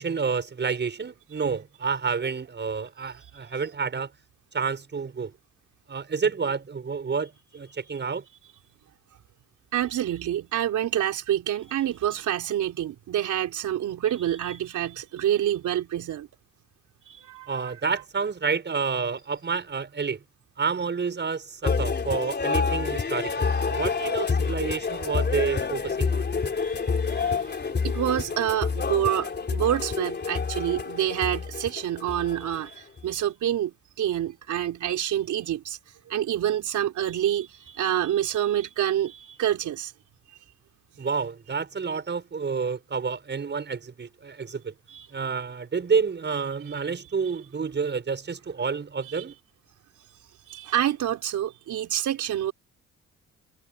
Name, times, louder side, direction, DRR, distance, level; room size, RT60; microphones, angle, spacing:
voice 1, 0.0-4.1 4.5-5.3 5.9-8.2 17.5-20.2 20.6-26.3 41.0-44.7 45.1-49.4, right 5 dB, 35° right, 5.9 m, -29 dB
voice 2, 9.7-16.3 17.1-18.0 26.6-27.6 27.8-35.8 36.1-39.9 44.9-45.1 50.5-52.5, right 11 dB, 75° right, 4.3 m, -27 dB
sound 1, 21.6-33.0, left 5 dB, 35° left, 3.8 m, -28 dB
cardioid pair, 90°, 30 cm